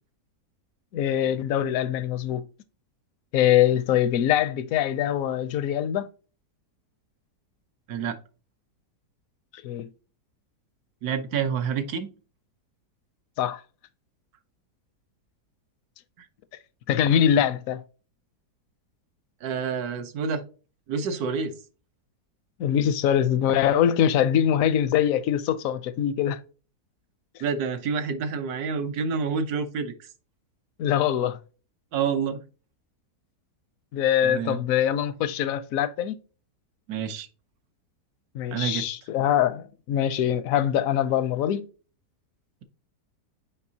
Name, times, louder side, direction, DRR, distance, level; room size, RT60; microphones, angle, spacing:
voice 1, 0.9-2.4 3.3-6.1 9.5-9.9 13.4-13.6 16.9-17.8 22.6-26.4 30.8-31.4 33.9-36.2 38.3-41.7, left 10 dB, 70° left, 0.9 m, -23 dB
voice 2, 11.0-12.1 19.4-20.4 20.9-21.6 27.4-30.1 31.9-32.4 34.2-34.6 36.9-37.3 38.5-38.8, right 6 dB, 70° right, 1.2 m, -28 dB
7.2 x 4.8 x 2.7 m
omnidirectional pair, 1.8 m